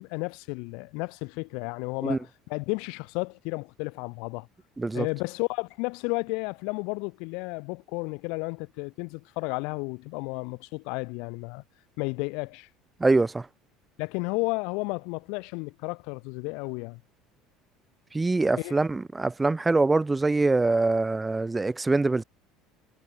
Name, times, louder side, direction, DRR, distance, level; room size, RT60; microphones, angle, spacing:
voice 1, 0.0-4.5 4.9-11.6 12.0-12.7 14.0-17.0 18.6-18.8, left 32 dB, 55° left, 1.0 m, -32 dB
voice 2, 13.0-13.5 18.1-22.2, right 3 dB, 15° right, 0.3 m, -24 dB
figure-of-eight pair, 65°, 0 cm